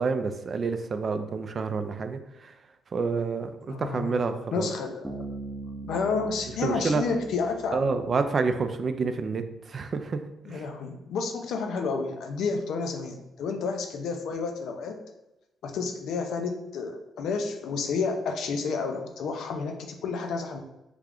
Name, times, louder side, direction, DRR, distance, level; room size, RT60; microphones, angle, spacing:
voice 1, 0.0-2.5 2.9-4.7 6.6-7.0 7.7-10.2 10.5-10.7, right 4 dB, 50° right, 8 dB, 0.3 m, -28 dB
voice 2, 3.7-4.2 4.5-5.4 5.8-7.8 10.4-15.0 15.6-20.6, left 4 dB, 75° left, 4 dB, 0.5 m, -30 dB
Bass guitar, 5.0-8.5, right 2 dB, 10° right, 0.6 m, -41 dB
3.3 x 2.4 x 3.5 m, 0.93 s
supercardioid pair, 70°, 0 cm